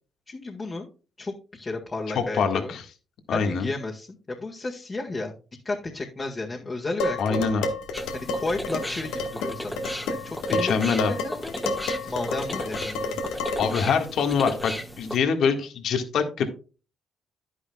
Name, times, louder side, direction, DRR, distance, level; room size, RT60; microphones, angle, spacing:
voice 1, 0.3-0.9 1.2-2.8 3.3-5.3 5.7-7.5 8.1-9.8 10.1-11.8 12.1-13.2, left 2 dB, 30° left, -1 dB, 1.7 m, -33 dB
voice 2, 2.3-2.8 3.3-3.7 7.2-7.7 10.6-11.1 13.6-16.5, left 6 dB, 70° left, 6 dB, 1.7 m, -24 dB
Dishes pots and pans, 7.0-13.9, left 2 dB, 90° left, 1.4 m, -30 dB
sound 1, 7.9-15.2, equal, 5° left, 1.6 m, -36 dB
10.5 x 9.8 x 2.3 m, 0.34 s
cardioid pair, 90°, 0 cm